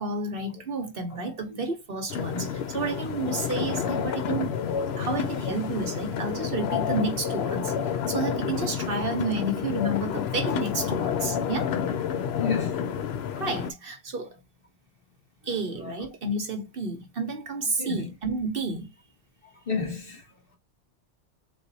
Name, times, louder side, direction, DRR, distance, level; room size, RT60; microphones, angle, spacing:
voice 1, 0.0-4.5 5.0-11.7 13.4-14.4 15.5-18.9, right 3 dB, 55° right, 1.1 m, -31 dB
sound 1, 2.1-13.7, left 7 dB, 70° left, 0.8 m, -29 dB
voice 2, 12.4-13.0 15.8-15.9 17.8-18.0 19.7-20.2, left 5 dB, 50° left, 1.5 m, -31 dB
4.0 x 2.5 x 4.0 m
omnidirectional pair, 1.2 m